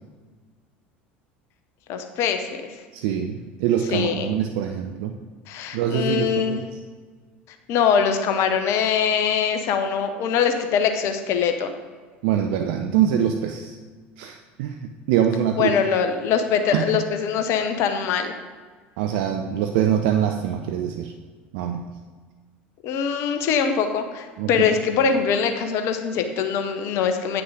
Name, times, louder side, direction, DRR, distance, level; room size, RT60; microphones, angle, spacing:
voice 1, 1.9-2.5 3.9-4.3 5.5-6.7 7.7-11.7 15.6-18.3 22.8-27.4, left 7 dB, 50° left, 7 dB, 0.8 m, -23 dB
voice 2, 2.9-5.1 5.7-6.6 12.2-13.8 14.2-15.7 16.7-16.8 19.0-21.1 21.5-21.9 24.4-24.7, right 9 dB, 55° right, 5 dB, 0.5 m, -24 dB
9.4 x 5.9 x 5.0 m, 1.5 s
figure-of-eight pair, 70°, 6 cm